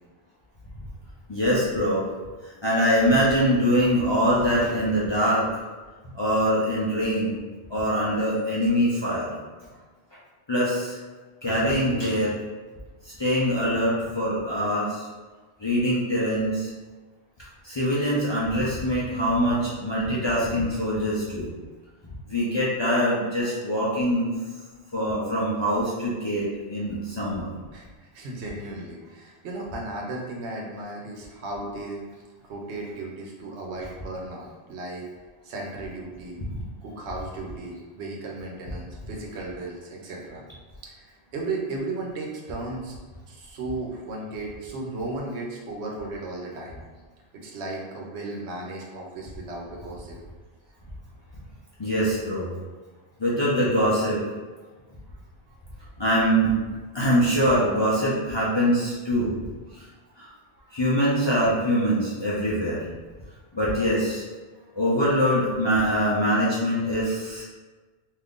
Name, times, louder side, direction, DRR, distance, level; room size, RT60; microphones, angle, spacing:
voice 1, 1.3-2.1 2.4-5.5 6.1-7.3 7.7-9.3 10.5-11.0 11.4-12.4 13.0-15.0 15.6-16.7 17.6-21.5 22.3-24.3 24.9-27.5 51.8-52.5 53.2-54.2 56.0-56.5 56.9-59.3 59.7-59.8 60.2-60.3 60.7-62.9 63.5-64.2 64.7-67.4, equal, 35° left, -8 dB, 0.4 m, -23 dB
voice 2, 27.7-32.0 32.4-35.1 35.4-36.4 36.8-40.4 40.8-42.9 43.3-46.8 47.3-50.2 54.6-54.7 55.5-55.6 57.5-57.7 60.5-60.8, right 2 dB, 85° right, -1 dB, 1.0 m, -35 dB
2.6 x 2.4 x 3.5 m, 1.3 s
omnidirectional pair, 1.1 m